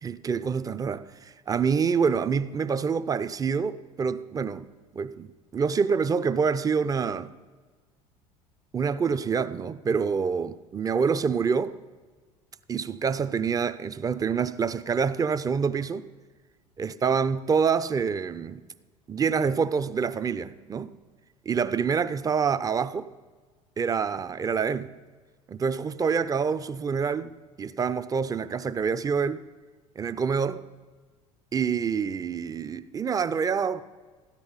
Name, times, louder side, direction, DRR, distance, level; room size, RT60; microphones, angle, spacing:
voice 1, 0.0-4.6 4.9-7.3 8.7-11.7 12.7-16.1 16.8-18.6 19.1-20.9 21.5-23.1 23.8-24.9 25.5-27.3 27.6-29.4 30.0-30.7 31.5-33.8, right 6 dB, 20° right, 0.4 m, -26 dB
13.5 x 9.7 x 4.1 m
hypercardioid pair, 75°, 18 cm